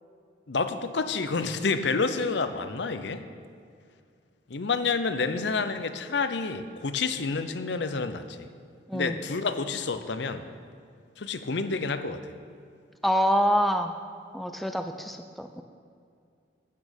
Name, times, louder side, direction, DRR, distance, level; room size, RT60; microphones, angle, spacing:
voice 1, 0.5-3.2 4.5-8.5 8.9-10.5 11.2-12.2, left 4 dB, 70° left, 10 dB, 0.7 m, -29 dB
voice 2, 8.9-9.2 13.0-14.0 14.3-15.6, equal, ahead, 7 dB, 0.4 m, -26 dB
12.0 x 8.6 x 5.2 m, 2.3 s
head